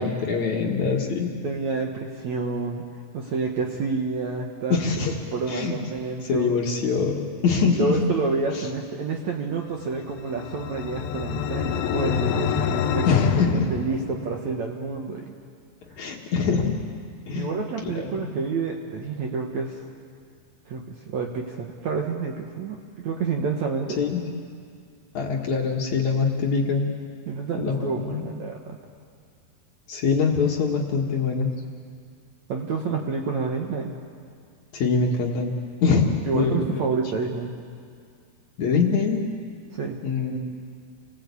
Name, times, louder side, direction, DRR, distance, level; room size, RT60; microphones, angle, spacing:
voice 1, 0.0-1.3 4.7-5.2 5.5-5.7 6.2-8.0 8.5-8.7 13.1-13.7 16.0-16.8 17.3-17.6 17.8-18.3 24.0-24.2 25.1-26.9 27.6-28.2 29.9-31.5 34.7-35.6 35.8-36.0 36.3-36.9 38.6-39.3 40.0-40.4, left 5 dB, 55° left, 1 dB, 2.5 m, -24 dB
voice 2, 1.4-2.8 3.1-4.8 5.3-6.5 7.6-13.2 13.5-15.3 17.4-19.8 20.7-24.0 27.3-28.8 32.5-33.9 36.3-37.5 39.7-40.0, right 4 dB, 60° right, 1 dB, 2.0 m, -29 dB
sound 1, 9.9-14.5, left 7 dB, 75° left, 2.6 m, -27 dB
29.0 x 19.5 x 8.3 m, 2.2 s
omnidirectional pair, 4.7 m